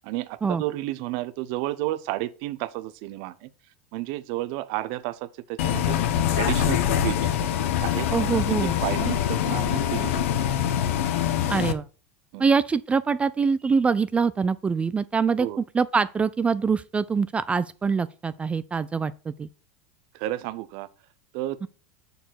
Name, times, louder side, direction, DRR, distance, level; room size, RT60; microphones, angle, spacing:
voice 1, 0.0-3.5 3.9-6.0 6.3-7.3 7.8-8.1 8.5-10.8 12.3-12.5 15.4-15.6 20.1-20.9 21.3-21.7, right 16 dB, 60° right, 0.7 m, -32 dB
Bus, 5.6-11.7, left 10 dB, 75° left, 0.9 m, -24 dB
voice 2, 8.1-8.7 11.5-11.9 12.4-19.5 21.6-21.7, right 5 dB, 15° right, 0.3 m, -24 dB
6.6 x 4.7 x 5.9 m
supercardioid pair, 115°, 7 cm